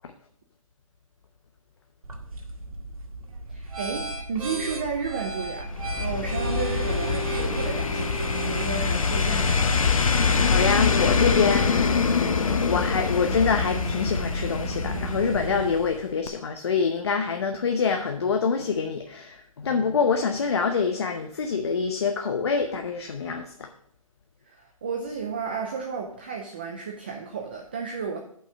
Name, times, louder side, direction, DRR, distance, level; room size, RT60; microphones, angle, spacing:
sound 1, 2.0-10.9, right 3 dB, 85° right, 1.9 m, -35 dB
voice 1, 3.5-5.7 6.0-9.6 24.4-28.2, right 5 dB, 20° right, 2 dB, 0.4 m, -32 dB
sound 2, 5.6-16.0 16.3-16.4, left 5 dB, 70° left, 1.0 m, -24 dB
sound 3, 10.2-15.7, right 4 dB, 50° right, 1.2 m, -36 dB
voice 2, 10.3-23.7, left 5 dB, 50° left, 4 dB, 0.8 m, -26 dB
8.8 x 5.5 x 5.0 m, 0.66 s
hypercardioid pair, 170°, 18 cm